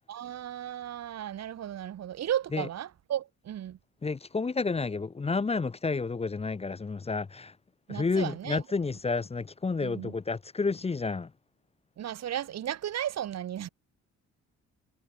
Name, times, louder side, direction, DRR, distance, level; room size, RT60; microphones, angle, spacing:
voice 1, 0.1-3.8 7.9-8.6 9.8-10.1 12.0-13.7, right 11 dB, 60° right, 1.4 m, -35 dB
voice 2, 4.0-7.5 7.9-11.3, left 4 dB, 20° left, 0.7 m, -30 dB
cardioid pair, 90°, 30 cm